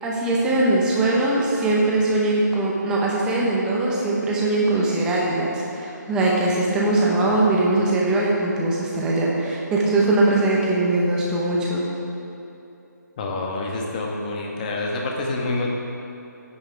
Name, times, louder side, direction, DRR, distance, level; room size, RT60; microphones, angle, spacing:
voice 1, 0.0-11.8, right 2 dB, 5° right, -4 dB, 1.1 m, -21 dB
voice 2, 13.2-15.7, left 2 dB, 25° left, 0 dB, 1.3 m, -27 dB
13.0 x 9.9 x 3.5 m, 2.8 s
figure-of-eight pair, 160°, 10 cm